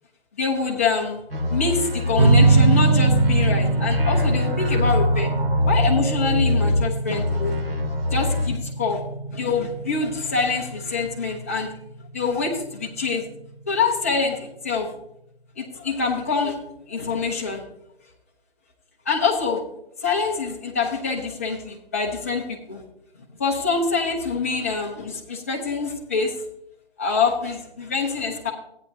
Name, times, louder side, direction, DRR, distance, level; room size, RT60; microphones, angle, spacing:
voice 1, 0.4-1.2 1.5-5.3 5.6-7.6 8.1-9.0 9.3-11.7 12.1-13.2 13.7-14.9 15.6-16.6 16.9-17.6 19.1-19.6 20.0-22.8 23.4-26.3 27.0-28.5, left 4 dB, 15° left, -1 dB, 0.7 m, -25 dB
sound 1, 1.3-6.8 7.1-8.5, left 2 dB, 65° right, 2.3 m, -24 dB
sound 2, 2.2-13.2, right 3 dB, 40° right, 1.3 m, -23 dB
13.5 x 9.4 x 2.7 m, 0.78 s
hypercardioid pair, 165°, 31 cm